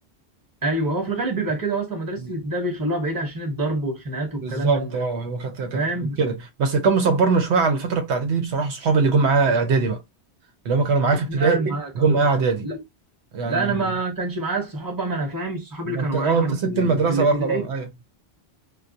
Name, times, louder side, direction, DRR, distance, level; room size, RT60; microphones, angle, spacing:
voice 1, 0.6-5.0 5.7-6.2 11.3-12.2 12.6-12.8 13.4-17.7, right 2 dB, 20° right, 1.0 m, -27 dB
voice 2, 4.4-10.0 10.6-12.7 13.3-13.9 15.8-17.9, right 4 dB, 90° right, 1.0 m, -22 dB
2.3 x 2.3 x 2.5 m
omnidirectional pair, 1.1 m